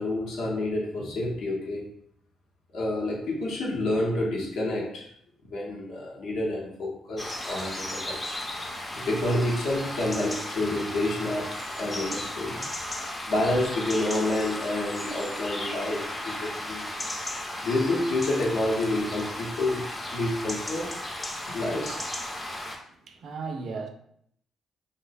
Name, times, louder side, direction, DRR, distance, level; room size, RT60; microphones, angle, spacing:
voice 1, 0.0-1.9 2.7-5.1 5.4-8.2 8.9-12.7 13.3-16.9 17.6-21.0 21.5-22.0, left 1 dB, 75° left, 0.8 m, -29 dB
sound 1, 7.2-22.8, left 1 dB, 20° left, 0.4 m, -35 dB
voice 2, 22.3-23.9, right 4 dB, 60° right, 0.3 m, -38 dB
2.4 x 2.1 x 2.5 m
cardioid pair, 90°, 0 cm